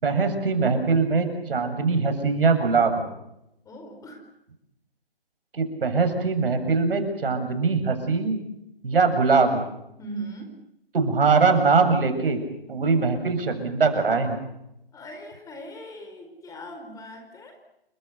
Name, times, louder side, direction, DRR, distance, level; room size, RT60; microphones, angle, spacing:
voice 1, 0.0-3.0 5.5-8.4 8.8-9.6 10.9-12.4 12.7-14.4, right 4 dB, 70° right, 7 dB, 7.1 m, -22 dB
voice 2, 3.6-4.3 10.0-10.6 14.9-17.6, right 1 dB, 10° left, 5 dB, 4.6 m, -39 dB
29.5 x 24.0 x 6.9 m, 0.83 s
hypercardioid pair, 145°, 29 cm